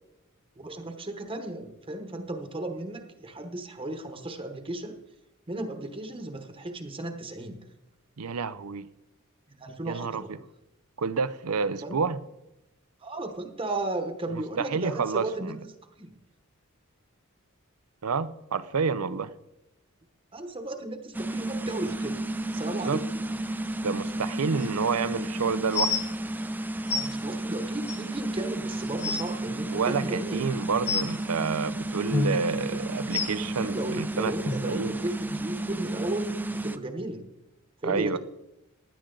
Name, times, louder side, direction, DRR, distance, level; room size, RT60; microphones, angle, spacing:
voice 1, 0.6-5.0 5.5-7.6 9.5-10.3 11.8-12.0 13.0-15.5 16.0-16.1 20.3-22.2 22.5-23.1 26.9-30.4 32.5-32.9 33.6-37.3 37.8-38.2, right 2 dB, 25° right, 5 dB, 1.1 m, -35 dB
voice 2, 8.2-8.9 9.8-10.2 11.0-12.2 14.6-15.6 18.0-19.3 22.7-23.0 23.8-26.0 29.7-34.3 34.6-34.9 37.8-38.2, right 5 dB, 85° right, 14 dB, 0.7 m, -29 dB
sound 1, 21.1-36.8, right 1 dB, 10° right, 0.4 m, -32 dB
sound 2, 25.7-26.0 26.9-27.0 27.9-28.0 28.5-28.6 28.9-29.2 30.9-31.1 32.1-32.3 33.1-33.3 34.4-34.5 35.3-35.4 36.1-36.2, left 4 dB, 30° left, 1.4 m, -27 dB
16.5 x 10.0 x 3.9 m, 0.91 s
head